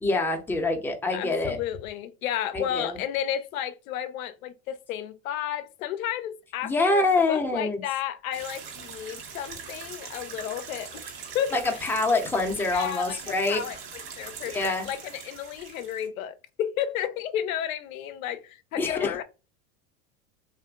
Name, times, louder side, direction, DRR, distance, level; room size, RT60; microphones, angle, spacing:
voice 1, 0.0-1.6 2.5-3.0 6.6-7.8 11.5-13.6 14.5-14.9 18.8-19.1, left 2 dB, 5° left, 0.5 m, -25 dB
voice 2, 1.1-11.0 11.3-11.9 12.7-19.2, left 10 dB, 85° left, 0.5 m, -32 dB
sound 1, 8.3-16.1, right 6 dB, 60° right, 1.3 m, -42 dB
2.8 x 2.5 x 2.2 m
hypercardioid pair, 95°, 40 cm